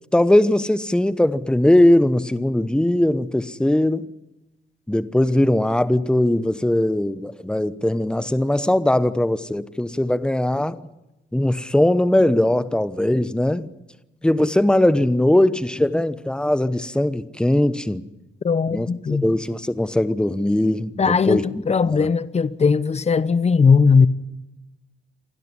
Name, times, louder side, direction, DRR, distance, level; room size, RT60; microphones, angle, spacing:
voice 1, 0.1-4.1 4.9-10.8 11.3-13.7 14.2-18.0 18.7-21.4 21.9-22.1, left 1 dB, 5° left, 1.0 m, -20 dB
voice 2, 18.4-19.3 21.0-24.1, left 5 dB, 35° left, 1.0 m, -18 dB
27.5 x 12.0 x 9.8 m
cardioid pair, 90°, 20 cm